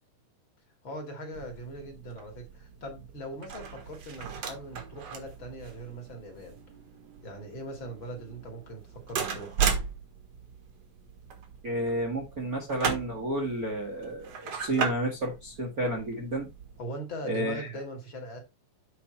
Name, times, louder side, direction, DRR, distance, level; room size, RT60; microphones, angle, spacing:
voice 1, 0.8-6.6 7.2-9.7 16.8-18.4, right 1 dB, 40° left, 2.7 m, -40 dB
sound 1, 1.3-16.8, right 6 dB, 55° right, 2.5 m, -37 dB
voice 2, 11.6-16.5 17.2-17.7, right 1 dB, 35° right, 1.6 m, -31 dB
8.5 x 5.1 x 4.3 m
omnidirectional pair, 3.6 m